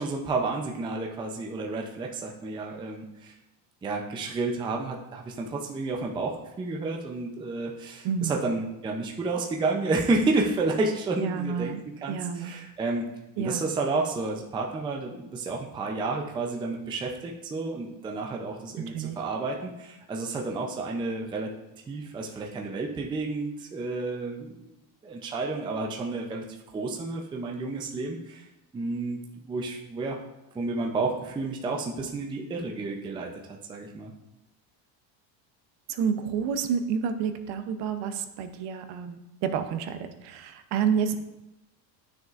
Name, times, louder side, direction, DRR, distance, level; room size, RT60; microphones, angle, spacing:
voice 1, 0.0-3.3 3.8-13.1 13.4-21.5 21.9-24.7 25.0-26.4 26.7-28.4 28.7-29.2 29.5-30.2 30.5-34.1, right 3 dB, 10° right, 1 dB, 0.4 m, -31 dB
voice 2, 8.0-8.4 11.2-11.8 12.1-12.6 13.4-13.6 18.9-19.2 35.9-41.2, right 7 dB, 55° right, 9 dB, 0.7 m, -29 dB
10.0 x 6.2 x 2.5 m, 0.94 s
cardioid pair, 140°, 50 cm